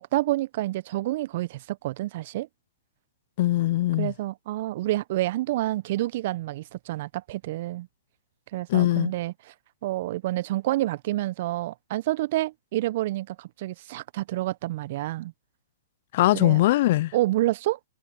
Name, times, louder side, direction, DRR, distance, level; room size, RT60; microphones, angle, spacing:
voice 1, 0.0-2.5 4.0-7.9 8.5-9.5 9.8-15.3 16.3-16.6 17.1-17.8, right 16 dB, 50° right, 1.2 m, -28 dB
voice 2, 3.4-4.1 8.7-9.1 16.1-17.1, left 16 dB, 50° left, 0.8 m, -21 dB
figure-of-eight pair, 115°, 0 cm